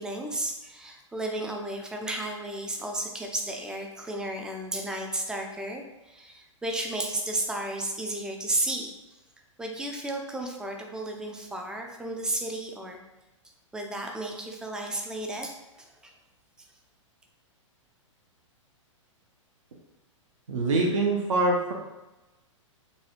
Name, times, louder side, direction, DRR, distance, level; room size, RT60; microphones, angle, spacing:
voice 1, 0.0-8.9 9.6-13.0 13.7-16.1, right 1 dB, 5° right, 2 dB, 0.3 m, -33 dB
voice 2, 20.5-21.7, right 2 dB, 70° right, 0 dB, 0.6 m, -24 dB
4.1 x 2.3 x 2.8 m, 1.0 s
figure-of-eight pair, 110°, 17 cm